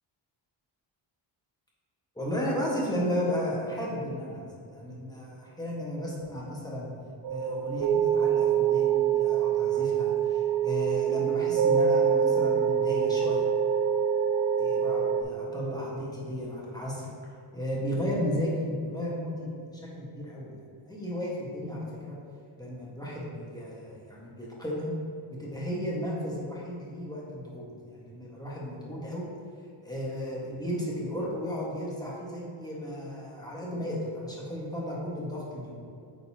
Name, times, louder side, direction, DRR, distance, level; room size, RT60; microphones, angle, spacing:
voice 1, 2.1-4.4 4.7-6.9 7.3-13.4 14.6-17.1 17.5-20.5 20.9-22.2 22.6-24.9 25.3-29.3 29.8-35.7, equal, 10° left, -5 dB, 1.4 m, -34 dB
sound 1, 7.2-15.2, right 8 dB, 65° right, 0.6 m, -25 dB
9.1 x 4.0 x 2.8 m, 2.5 s
cardioid pair, 125°, 48 cm